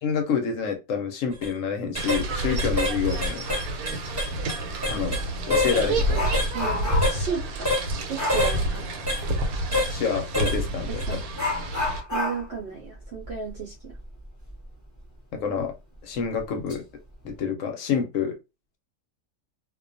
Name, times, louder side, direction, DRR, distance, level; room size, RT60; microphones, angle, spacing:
voice 1, 0.0-3.4 4.9-5.2 5.5-6.2 9.9-11.0 15.3-15.7 16.0-16.8 17.2-18.4, left 6 dB, 65° left, 0.9 m, -28 dB
sound 1, 1.3-1.5 1.9-2.2 2.6-3.0 3.2-5.2 5.5-5.9 6.3-6.5 7.0-7.2 7.7-7.9 8.3-8.6 9.1-9.2 9.7-9.9 10.3-10.6 11.0-11.2, left 1 dB, 15° right, 0.9 m, -26 dB
sound 2, 2.0-12.0, right 1 dB, 85° right, 1.1 m, -29 dB
Dog, 4.8-4.9 5.4-7.3 8.1-8.5 10.5-10.6 11.3-14.6 15.0-15.1 15.6-15.7 16.3-16.8 17.1-17.4, left 2 dB, 20° left, 0.5 m, -31 dB
voice 2, 6.5-7.8 8.1-8.9 10.9-11.5 12.1-14.0, right 6 dB, 65° right, 0.6 m, -34 dB
2.4 x 2.2 x 2.5 m
omnidirectional pair, 1.5 m